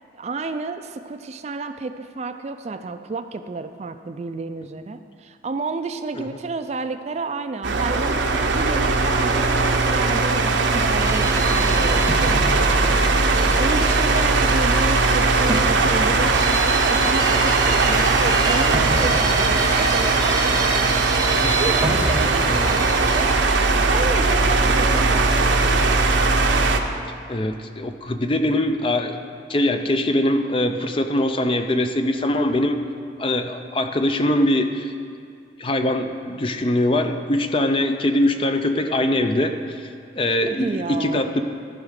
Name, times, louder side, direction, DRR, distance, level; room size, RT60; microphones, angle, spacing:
voice 1, 0.1-21.0 21.6-25.9 40.5-41.2, right 3 dB, 35° right, 9 dB, 0.3 m, -31 dB
sound 1, 7.6-26.8, right 3 dB, 80° right, 0.7 m, -19 dB
sound 2, 11.0-23.4, right 2 dB, 20° right, 0.7 m, -27 dB
voice 2, 27.3-29.2 29.5-32.8 33.2-34.9 35.6-39.9 40.2-41.4, left 1 dB, 30° left, 7 dB, 0.5 m, -22 dB
14.0 x 4.9 x 6.5 m, 2.4 s
head